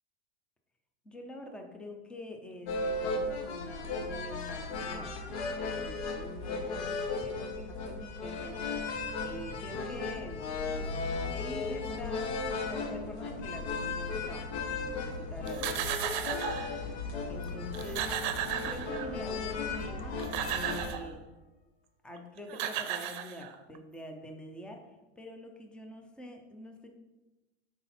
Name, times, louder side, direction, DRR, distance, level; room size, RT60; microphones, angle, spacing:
voice 1, 1.0-8.6 9.2-10.4 10.7-10.9 11.3-15.9 17.3-18.2 18.6-20.2 20.5-21.2 22.0-26.9, left 1 dB, 5° left, 3 dB, 0.4 m, -46 dB
Accordion busker (Bristol), 2.7-20.9, left 3 dB, 85° left, 1.4 m, -36 dB
sound 1, 15.5-16.8 17.4-17.5 17.7-19.3 20.0-21.1 22.2-22.3 22.5-23.8, right 10 dB, 45° right, 0.6 m, -35 dB
sound 2, 18.1-21.0, left 5 dB, 60° left, 2.1 m, -51 dB
9.5 x 4.0 x 4.2 m, 1.1 s
supercardioid pair, 160°, 32 cm